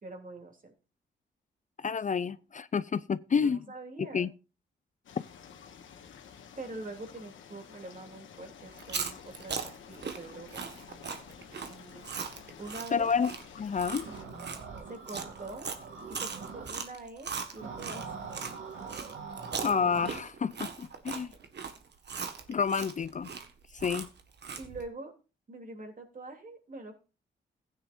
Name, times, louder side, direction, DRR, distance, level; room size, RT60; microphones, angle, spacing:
voice 1, 0.0-0.7 3.4-4.3 6.6-9.6 9.9-10.6 11.7-12.1 12.6-13.1 14.9-15.7 16.1-18.0 24.6-25.1 25.5-26.9, right 2 dB, 45° right, 3.0 m, -44 dB
voice 2, 1.8-3.6 4.0-4.3 12.9-13.3 13.6-14.1 19.6-21.3 22.5-23.3 23.7-24.1, left 6 dB, 40° left, 0.5 m, -29 dB
sound 1, 5.0-14.2, left 7 dB, 75° left, 1.4 m, -51 dB
Chewing mastication, 8.7-18.5 18.9-24.8, right 5 dB, 60° right, 1.6 m, -39 dB
sound 2, 13.9-16.7 17.6-20.2, right 5 dB, 80° right, 2.7 m, -43 dB
15.0 x 9.6 x 2.6 m
supercardioid pair, 45°, 20 cm